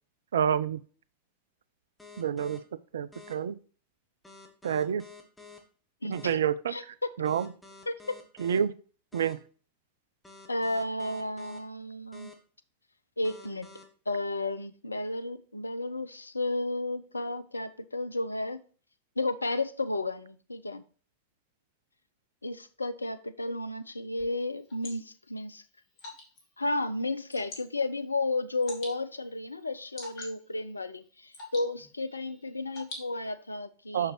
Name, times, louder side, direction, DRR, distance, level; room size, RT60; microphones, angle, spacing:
voice 1, 0.3-0.8 2.2-2.6 2.9-3.6 4.6-5.0 6.1-6.7 7.2-7.5 8.4-8.7 9.1-9.4 33.9-34.1, right 8 dB, 65° right, 0.3 m, -28 dB
sound 1, 2.0-2.6 3.1-3.3 4.2-5.6 6.1-6.3 7.2-8.6 9.1-9.3 10.2-11.6 12.1-12.3 13.2-13.8, left 4 dB, 10° left, 1.5 m, -49 dB
voice 2, 6.0-6.4 6.7-7.1 7.9-8.1 10.5-12.3 13.2-13.7 14.1-18.6 19.2-20.8 22.4-25.6 26.6-34.1, left 2 dB, 80° left, 0.5 m, -33 dB
Water / Drip, 24.2-33.6, left 2 dB, 40° left, 2.4 m, -49 dB
6.5 x 6.3 x 3.0 m
figure-of-eight pair, 90°, 0 cm